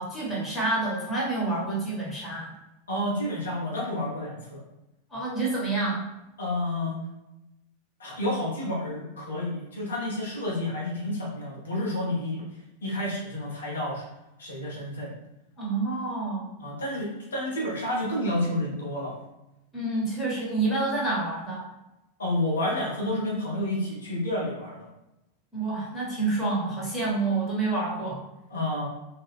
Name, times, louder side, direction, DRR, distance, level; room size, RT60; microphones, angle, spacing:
voice 1, 0.0-2.5 5.1-6.0 15.6-16.5 19.7-21.7 25.5-28.2, right 3 dB, 15° left, -5 dB, 1.1 m, -28 dB
voice 2, 2.9-4.6 6.4-7.0 8.0-12.4 12.8-14.0 14.4-15.1 16.6-19.2 22.2-24.9 28.5-28.9, left 1 dB, 70° left, -5 dB, 0.7 m, -30 dB
2.3 x 2.2 x 3.4 m, 0.94 s
figure-of-eight pair, 90°, 0 cm